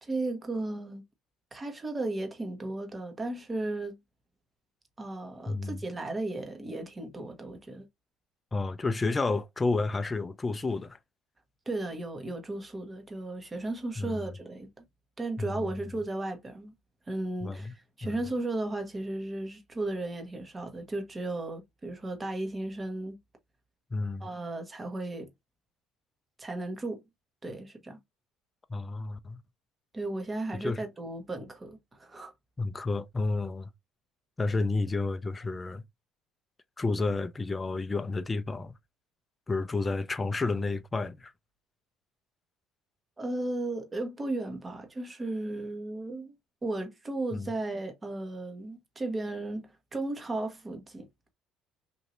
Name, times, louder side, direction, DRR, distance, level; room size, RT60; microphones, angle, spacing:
voice 1, 0.0-1.0 1.5-4.0 5.0-7.9 11.7-14.8 15.2-16.7 17.1-23.2 24.2-25.3 26.4-27.0 27.4-28.0 29.9-32.3 43.2-46.3 46.6-51.1, right 2 dB, 25° right, 1.1 m, -35 dB
voice 2, 5.5-5.8 8.5-11.0 14.0-14.2 15.4-15.8 17.4-17.7 18.0-18.2 23.9-24.3 28.7-29.4 30.5-30.8 32.6-33.7 34.4-35.8 36.8-38.7 39.5-41.3 47.3-47.5, left 3 dB, 20° left, 0.4 m, -31 dB
3.1 x 2.6 x 2.5 m
supercardioid pair, 80°, 0 cm